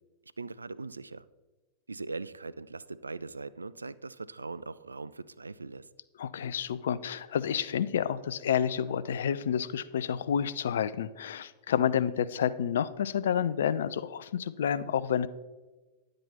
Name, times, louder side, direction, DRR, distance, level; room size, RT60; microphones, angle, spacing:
voice 1, 0.4-1.2 1.9-5.9, right 3 dB, 80° right, 18 dB, 0.3 m, -40 dB
voice 2, 6.2-15.3, left 8 dB, 60° left, 15 dB, 0.4 m, -29 dB
10.5 x 7.8 x 4.1 m, 1.2 s
figure-of-eight pair, 90°, 0 cm